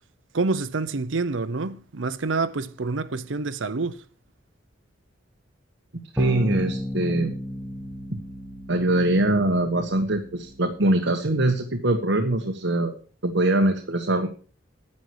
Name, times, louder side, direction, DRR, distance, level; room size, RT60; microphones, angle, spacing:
voice 1, 0.3-4.0, right 3 dB, 85° right, 0.8 m, -27 dB
voice 2, 6.1-7.3 8.7-12.9 13.2-14.3, right 1 dB, 65° right, 1.4 m, -22 dB
sound 1, 6.2-10.9, equal, 10° right, 1.4 m, -33 dB
10.5 x 9.8 x 4.8 m
head